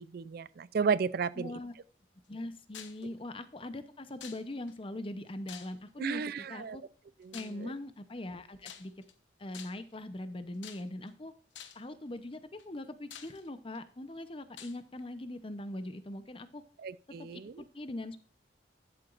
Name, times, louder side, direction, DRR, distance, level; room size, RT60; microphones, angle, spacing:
voice 1, 0.0-1.5 6.0-6.8 7.2-7.4 7.6-7.7 16.8-17.6, right 5 dB, 55° right, 0.4 m, -33 dB
voice 2, 1.4-1.7 2.3-6.8 7.3-8.9 9.4-11.3 11.7-16.6 17.2-18.2, left 1 dB, 30° left, 0.7 m, -41 dB
sound 1, 2.7-3.1 4.2-4.7 5.5-6.0 7.3-7.6 8.6-9.1 9.5-9.9 10.6-11.1 11.5-11.9 12.6-12.7 13.1-13.8 14.6-14.8, left 9 dB, 80° left, 1.0 m, -48 dB
12.0 x 7.7 x 2.5 m
head